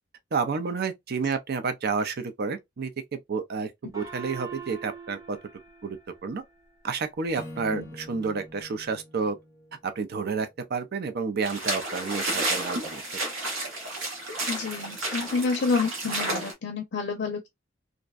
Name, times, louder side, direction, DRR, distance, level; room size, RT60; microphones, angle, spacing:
voice 1, 0.3-5.4 5.8-6.4 6.8-9.4 9.8-13.2, right 5 dB, 55° right, 0.5 m, -30 dB
Gong, 3.9-6.8, right 6 dB, 15° right, 0.8 m, -43 dB
Acoustic guitar / Strum, 7.3-10.7, left 1 dB, 15° left, 0.7 m, -45 dB
sound 1, 11.4-16.5, right 1 dB, 90° right, 1.0 m, -31 dB
voice 2, 14.5-17.5, left 4 dB, 60° left, 0.5 m, -29 dB
2.5 x 2.1 x 2.3 m
head